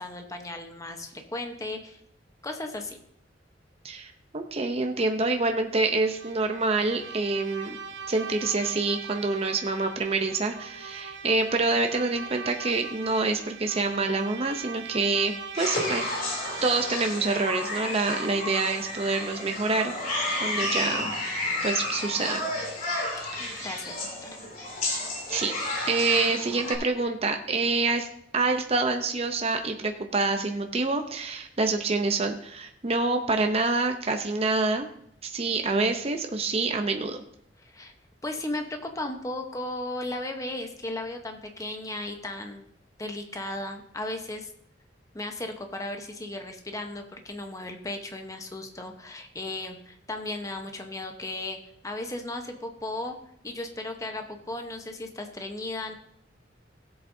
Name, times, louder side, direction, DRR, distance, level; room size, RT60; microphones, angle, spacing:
voice 1, 0.0-2.0 2.4-3.0 23.4-24.0 24.2-24.3 37.6-37.9 38.2-42.6 43.0-44.5 45.1-51.6 51.8-53.2 53.4-55.9, left 2 dB, 20° left, 4 dB, 1.0 m, -35 dB
voice 2, 3.8-7.8 8.1-16.1 16.6-19.9 20.4-21.1 21.6-22.4 23.3-23.7 25.3-25.5 25.9-28.1 28.3-34.9 35.2-37.2, right 3 dB, 35° right, 5 dB, 0.7 m, -26 dB
Bowed string instrument, 5.8-19.7, right 6 dB, 80° right, 1.0 m, -41 dB
sound 1, 15.5-26.7, left 1 dB, 50° left, 3.1 m, -31 dB
16.5 x 7.9 x 2.7 m, 0.71 s
head